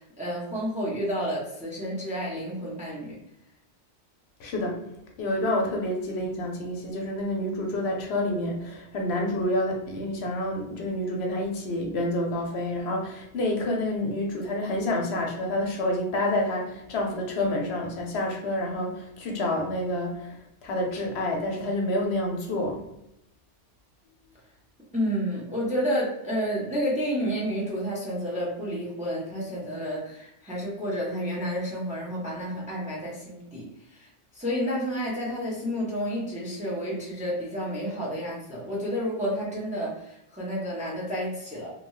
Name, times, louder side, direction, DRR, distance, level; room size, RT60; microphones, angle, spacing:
voice 1, 0.0-3.2 24.9-34.1 34.3-41.7, equal, 10° right, -4 dB, 0.5 m, -30 dB
voice 2, 4.4-4.8 5.2-22.8, left 1 dB, 70° left, 1 dB, 0.8 m, -28 dB
2.7 x 2.2 x 3.0 m, 0.83 s
omnidirectional pair, 1.2 m